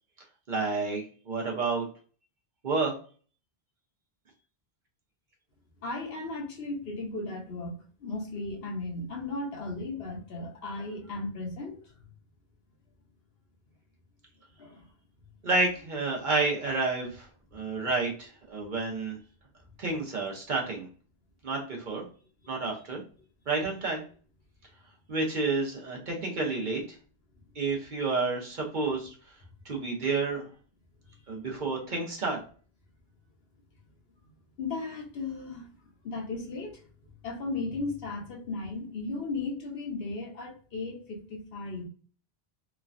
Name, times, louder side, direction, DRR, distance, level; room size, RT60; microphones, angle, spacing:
voice 1, 0.5-1.9 2.6-2.9 15.4-19.2 19.8-20.9 21.4-22.0 22.5-23.0 23.5-24.0 25.1-27.0 27.6-29.1 29.6-30.4 31.3-32.4, right 3 dB, 50° right, 0 dB, 0.8 m, -30 dB
voice 2, 5.8-11.9 14.6-14.9 17.5-17.8 22.4-22.8 31.1-31.2 34.6-35.7 36.0-41.9, left 3 dB, 65° left, 0 dB, 1.0 m, -36 dB
3.1 x 2.2 x 2.4 m, 0.41 s
omnidirectional pair, 1.1 m